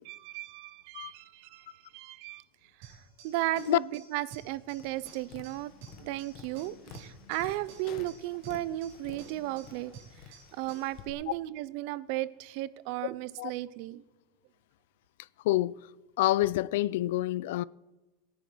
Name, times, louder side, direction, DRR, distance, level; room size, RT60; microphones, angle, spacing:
voice 1, 0.0-2.4 2.8-3.0 3.2-5.7 6.0-14.0, right 16 dB, 55° right, 0.5 m, -35 dB
sound 1, 2.8-11.0, right 5 dB, 75° right, 4.5 m, -53 dB
Tap, 4.7-11.1, left 9 dB, 45° left, 1.3 m, -51 dB
voice 2, 15.4-15.8 16.2-17.6, left 16 dB, 75° left, 0.3 m, -27 dB
18.5 x 10.5 x 3.9 m
supercardioid pair, 155°, 0 cm